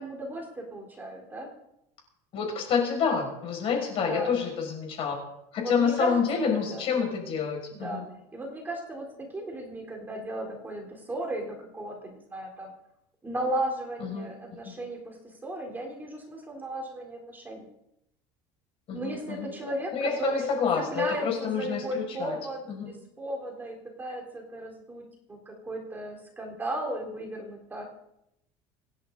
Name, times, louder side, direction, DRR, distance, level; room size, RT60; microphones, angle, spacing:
voice 1, 0.0-1.5 4.0-4.4 5.6-7.2 7.7-8.0 8.3-12.7 13.2-17.7 18.9-20.5 20.8-27.9, right 1 dB, 15° right, 0 dB, 3.7 m, -35 dB
voice 2, 2.3-5.1 5.5-8.0 14.0-14.3 14.6-14.7 18.9-19.5 19.9-22.4 22.7-22.9, left 6 dB, 50° left, 1 dB, 6.2 m, -28 dB
27.0 x 10.5 x 4.0 m, 0.81 s
cardioid pair, 140°, 13 cm